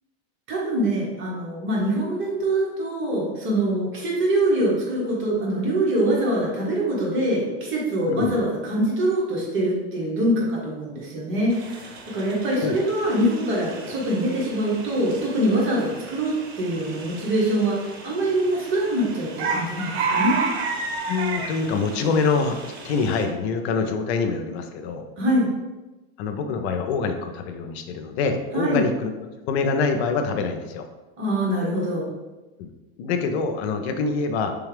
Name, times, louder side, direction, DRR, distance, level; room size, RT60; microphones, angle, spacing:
voice 1, 0.5-11.9 12.1-20.4 25.2-25.5 28.5-28.8 31.2-32.1, right 1 dB, 40° right, -4 dB, 1.3 m, -24 dB
voice 2, 8.1-8.4 12.6-12.8 21.1-25.0 26.2-29.1 29.5-30.9 32.6-32.7 33.0-34.6, left 4 dB, 85° left, 6 dB, 0.5 m, -25 dB
sound 1, 11.5-23.2, right 4 dB, 80° right, 0.8 m, -32 dB
3.3 x 2.3 x 3.3 m, 1.1 s
supercardioid pair, 120°, 31 cm